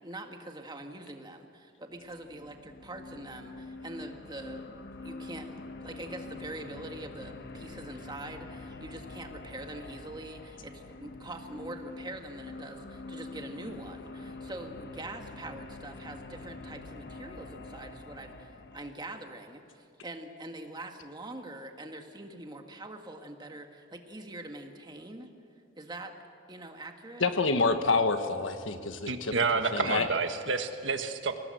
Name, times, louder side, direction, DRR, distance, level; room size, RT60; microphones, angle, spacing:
voice 1, 0.0-4.7 5.0-25.3 25.8-26.1 26.5-27.3, right 1 dB, 20° right, 4 dB, 1.7 m, -44 dB
sound 1, 1.9-18.9, left 3 dB, 55° left, 1.1 m, -45 dB
voice 2, 27.2-29.3 29.7-30.1, left 3 dB, 75° left, 8 dB, 1.4 m, -27 dB
voice 3, 29.1-31.4, right 4 dB, 65° right, 7 dB, 1.5 m, -29 dB
23.0 x 18.0 x 7.8 m, 2.3 s
head